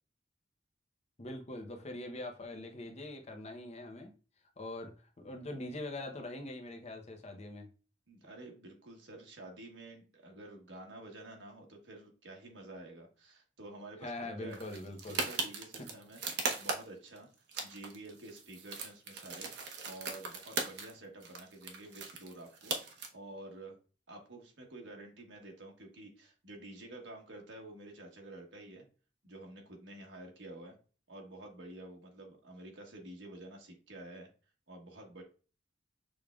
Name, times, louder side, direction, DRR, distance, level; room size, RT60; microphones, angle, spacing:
voice 1, 1.2-4.1 4.6-7.7 14.0-15.2 15.8-15.9, left 1 dB, 35° left, 0.8 m, -43 dB
voice 2, 8.1-14.1 14.4-14.8 15.1-17.3 17.6-22.7 23.1-23.8 24.1-28.8 29.2-30.8 31.1-34.3 34.7-35.2, right 2 dB, 80° right, 1.2 m, -50 dB
sound 1, 14.5-17.2 17.5-20.9 21.2-23.1, right 4 dB, 65° right, 0.9 m, -39 dB
6.4 x 3.4 x 2.3 m
head